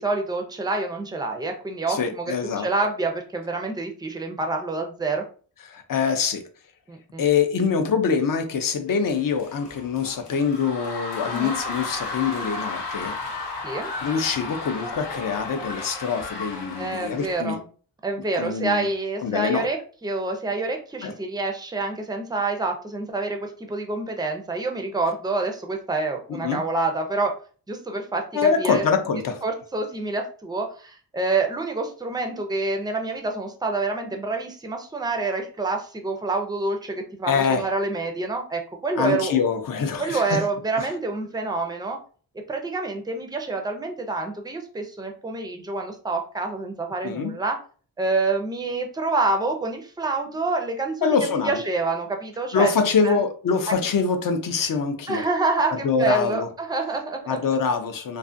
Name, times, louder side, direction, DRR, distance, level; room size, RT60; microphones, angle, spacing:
voice 1, 0.0-5.2 6.9-7.2 11.3-11.6 13.6-13.9 16.8-17.6 18.0-27.3 27.7-28.8 29.4-39.4 40.0-42.0 42.5-47.6 48.0-53.2 53.7-53.8 55.1-57.4, right 3 dB, 10° right, 3 dB, 0.4 m, -27 dB
voice 2, 1.9-2.7 5.7-6.5 7.2-13.2 14.0-17.6 18.4-18.9 19.2-19.7 21.0-21.1 26.3-26.6 28.3-29.4 37.2-37.6 39.0-40.4 40.8-40.9 47.0-47.3 51.0-51.6 52.5-55.3 55.7-56.5 57.3-58.2, left 6 dB, 55° left, 7 dB, 0.5 m, -24 dB
sound 1, 9.1-17.4, left 3 dB, 80° left, 0.8 m, -34 dB
2.4 x 2.4 x 2.5 m, 0.41 s
wide cardioid pair, 120°, 41 cm